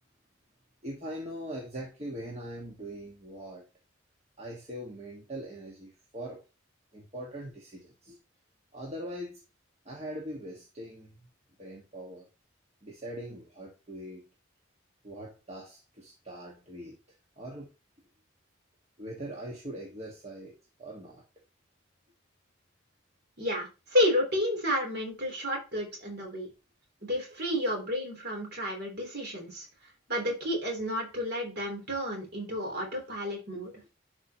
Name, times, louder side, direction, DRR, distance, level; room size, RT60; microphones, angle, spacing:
voice 1, 0.8-3.6 4.4-6.4 6.9-8.2 8.7-9.4 9.8-11.2 11.6-12.2 12.8-14.2 15.0-17.0 17.4-17.7 19.0-21.2 33.5-33.6, right 1 dB, 30° right, 1.6 m, -41 dB
voice 2, 23.4-26.5 27.0-29.7 30.1-33.7, left 1 dB, 50° right, 3.4 m, -31 dB
12.0 x 4.7 x 2.9 m
head